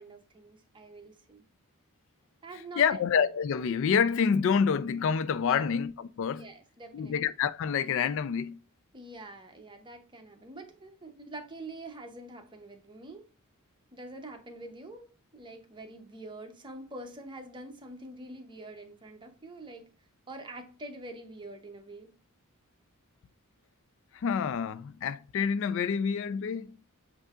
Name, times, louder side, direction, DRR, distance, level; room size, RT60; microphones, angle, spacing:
voice 1, 0.0-1.4 2.4-2.9 5.4-5.6 6.3-7.2 8.9-13.2 13.9-19.9 20.3-22.1, right 2 dB, 20° right, 0.8 m, -45 dB
voice 2, 2.8-6.5 6.9-8.6 24.1-26.8, left 6 dB, 60° left, 0.3 m, -27 dB
7.9 x 2.7 x 2.4 m
head